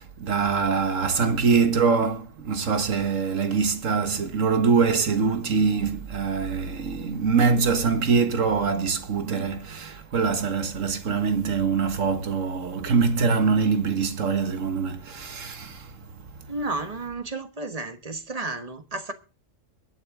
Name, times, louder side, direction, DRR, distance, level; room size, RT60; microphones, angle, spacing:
voice 1, 0.0-15.9, right 5 dB, 75° right, 1.8 m, -24 dB
voice 2, 16.5-19.1, right 2 dB, 30° right, 1.3 m, -32 dB
23.5 x 8.9 x 3.6 m
omnidirectional pair, 1.3 m